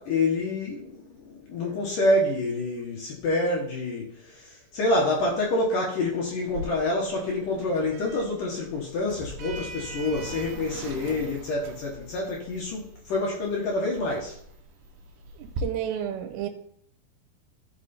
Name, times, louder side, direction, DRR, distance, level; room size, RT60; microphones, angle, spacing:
voice 1, 0.0-14.4, left 2 dB, 60° left, 2.3 m, -27 dB
Sliding door, 6.5-15.6, right 2 dB, 70° right, 2.6 m, -41 dB
voice 2, 15.4-16.5, right 10 dB, 90° right, 3.7 m, -31 dB
13.0 x 6.1 x 4.4 m
omnidirectional pair, 5.7 m